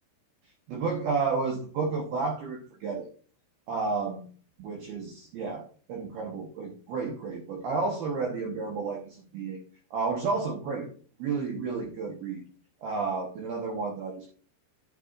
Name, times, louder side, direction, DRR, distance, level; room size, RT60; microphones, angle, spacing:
voice 1, 0.7-3.1 3.7-4.3 4.6-9.6 9.9-10.9 11.2-12.4 12.8-14.3, right 4 dB, 75° right, 1 dB, 2.2 m, -31 dB
11.0 x 9.4 x 2.4 m, 0.42 s
omnidirectional pair, 5.9 m